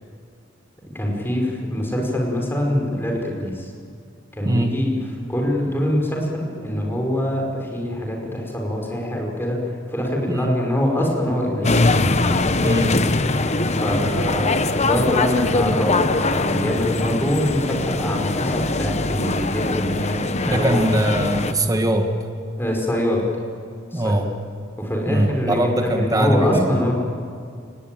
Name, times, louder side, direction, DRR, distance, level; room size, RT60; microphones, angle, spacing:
voice 1, 0.9-3.7 4.4-4.9 5.3-9.6 9.9-11.7 13.8-16.1 16.4-20.9 22.6-23.2 23.9-24.3 24.8-26.9, left 1 dB, 10° left, 0 dB, 4.9 m, -24 dB
voice 2, 4.4-4.8 10.3-10.6 12.6-13.0 20.5-22.1 23.9-24.3 25.1-26.7, right 1 dB, 20° right, 4 dB, 1.6 m, -21 dB
sound 1, 11.6-21.5, left 2 dB, 35° left, 1.0 m, -22 dB
29.0 x 19.5 x 9.2 m, 2.2 s
head